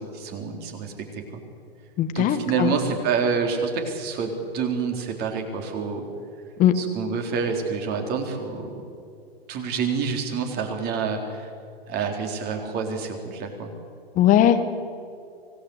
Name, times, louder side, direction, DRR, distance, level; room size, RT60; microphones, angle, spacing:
voice 1, 0.0-1.4 2.1-6.0 6.8-8.7 9.5-11.5 11.9-13.7, right 5 dB, 30° right, 4 dB, 3.9 m, -28 dB
voice 2, 2.0-2.7 6.6-6.7 14.1-14.6, left 11 dB, 25° left, 9 dB, 1.5 m, -19 dB
24.5 x 18.0 x 8.2 m, 2.5 s
hypercardioid pair, 120°, 31 cm